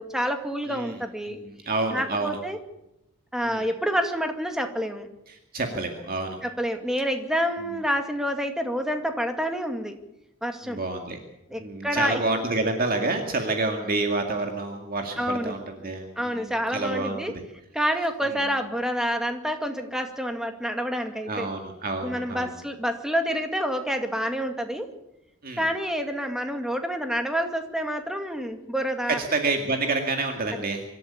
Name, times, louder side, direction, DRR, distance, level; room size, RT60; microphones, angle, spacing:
voice 1, 0.0-1.4 1.9-2.6 3.3-5.1 6.4-10.0 10.4-10.8 11.5-12.2 15.2-15.6 16.2-17.3 17.7-21.5 22.0-24.9 25.6-29.2, equal, ahead, 5 dB, 2.1 m, -28 dB
voice 2, 0.7-1.0 1.2-2.4 3.4-3.7 5.3-6.4 10.6-11.2 11.6-17.4 18.2-18.4 21.3-22.5 25.4-25.7 29.1-30.9, right 3 dB, 40° right, 3 dB, 2.1 m, -28 dB
25.0 x 13.0 x 8.6 m, 0.87 s
head